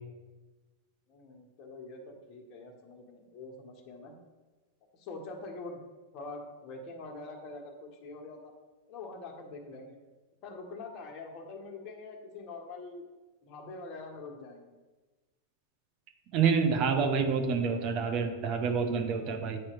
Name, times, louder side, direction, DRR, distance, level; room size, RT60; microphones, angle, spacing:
voice 1, 1.1-4.1 4.9-5.8 6.1-8.5 8.9-10.0 10.4-13.0 13.4-14.7, left 3 dB, 45° left, 2 dB, 1.3 m, -44 dB
voice 2, 16.3-19.6, right 5 dB, 45° right, 6 dB, 0.8 m, -28 dB
8.9 x 3.0 x 4.6 m, 1.2 s
hypercardioid pair, 115°, 0 cm